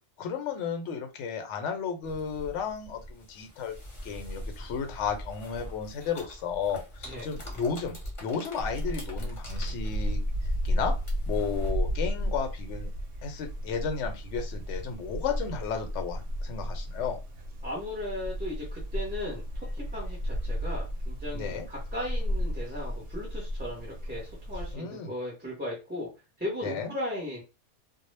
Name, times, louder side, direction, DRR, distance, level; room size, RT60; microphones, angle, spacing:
voice 1, 0.2-3.8 4.0-10.2 10.6-10.9 11.3-12.9 13.2-17.2 21.3-21.7 24.7-25.1 26.6-26.9, left 6 dB, 75° left, 6 dB, 0.9 m, -33 dB
sound 1, 2.0-11.7, equal, 30° left, 0.7 m, -44 dB
sound 2, 8.6-24.7, equal, 70° right, 0.8 m, -33 dB
voice 2, 17.6-26.1 26.4-27.4, left 1 dB, 10° right, -3 dB, 0.5 m, -37 dB
2.1 x 2.0 x 3.1 m, 0.29 s
omnidirectional pair, 1.2 m